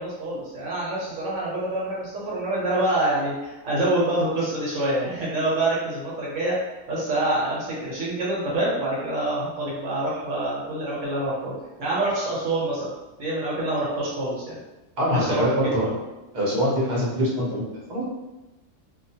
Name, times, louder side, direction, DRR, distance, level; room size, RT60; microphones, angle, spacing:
voice 1, 0.0-6.6 6.9-12.9 13.2-14.6 15.1-15.5, right 1 dB, 70° right, -6 dB, 1.0 m, -26 dB
voice 2, 15.0-16.0 16.3-18.0, equal, 40° right, -7 dB, 0.8 m, -24 dB
2.4 x 2.2 x 2.7 m, 1.0 s
omnidirectional pair, 1.4 m